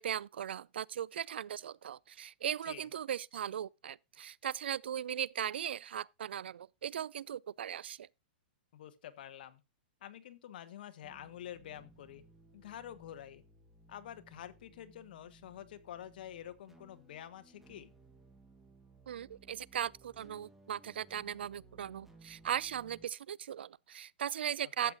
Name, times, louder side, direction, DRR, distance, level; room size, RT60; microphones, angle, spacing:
voice 1, 0.0-8.1 19.1-24.9, right 9 dB, 90° right, 0.4 m, -38 dB
voice 2, 8.7-9.6 10.0-12.2 12.5-13.4 13.9-17.9 24.6-24.9, left 11 dB, 60° left, 1.4 m, -48 dB
sound 1, 11.0-23.1, right 2 dB, 5° right, 1.3 m, -61 dB
13.0 x 8.0 x 2.5 m
hypercardioid pair, 155°, 6 cm